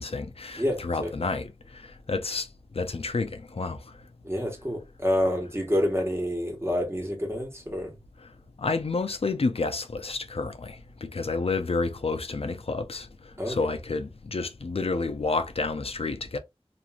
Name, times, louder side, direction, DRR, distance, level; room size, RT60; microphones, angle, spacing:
voice 1, 0.0-2.5 2.7-3.9 8.6-16.4, left 3 dB, 70° left, 0.4 m, -30 dB
voice 2, 0.6-1.1 4.2-7.9 13.4-13.6, equal, 25° right, 1.3 m, -28 dB
3.0 x 2.5 x 2.3 m
wide cardioid pair, 40°, 10 cm